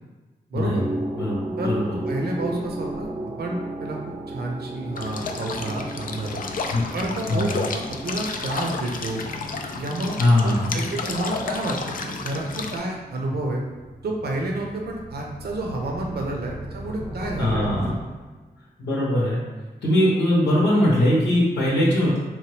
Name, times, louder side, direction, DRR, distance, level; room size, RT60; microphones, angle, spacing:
voice 1, 0.5-0.8 1.6-1.7 2.1-3.1 3.4-4.0 4.3-6.4 6.9-9.2 9.7-10.2 10.4-11.8 12.0-13.6 14.0-17.7, right 2 dB, 65° right, 0 dB, 0.6 m, -29 dB
sound 1, 0.6-14.1, right 1 dB, 10° right, 0.5 m, -36 dB
voice 2, 1.6-2.0 6.7-6.8 7.3-7.5 10.2-10.8 17.4-18.0 18.8-19.4 19.8-22.2, left 1 dB, 85° left, -5 dB, 0.8 m, -21 dB
sound 2, 5.0-12.8, left 4 dB, 55° left, 0.4 m, -31 dB
sound 3, 13.8-18.5, equal, 15° left, 0.8 m, -37 dB
3.0 x 2.1 x 3.2 m, 1.2 s
supercardioid pair, 45°, 18 cm